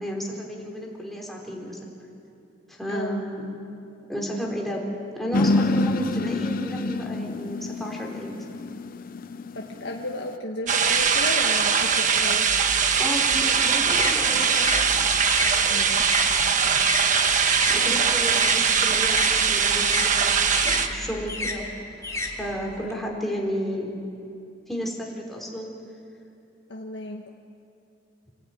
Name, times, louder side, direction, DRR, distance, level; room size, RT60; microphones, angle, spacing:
voice 1, 0.0-1.8 2.7-3.5 4.1-4.9 5.1-8.5 13.0-14.7 17.7-20.3 20.6-24.0 24.7-25.7, equal, ahead, -2 dB, 4.4 m, -32 dB
voice 2, 2.9-3.4 9.5-12.5 15.6-16.0 17.8-18.0 26.7-27.3, left 1 dB, 75° left, -1 dB, 1.5 m, -34 dB
sound 1, 5.3-10.4, left 2 dB, 50° left, 0.7 m, -27 dB
sound 2, 10.7-20.9, right 6 dB, 45° right, 1.3 m, -21 dB
sound 3, 13.1-17.8 18.1-22.9, left 2 dB, 15° left, 2.4 m, -32 dB
27.0 x 17.0 x 9.4 m, 2.7 s
head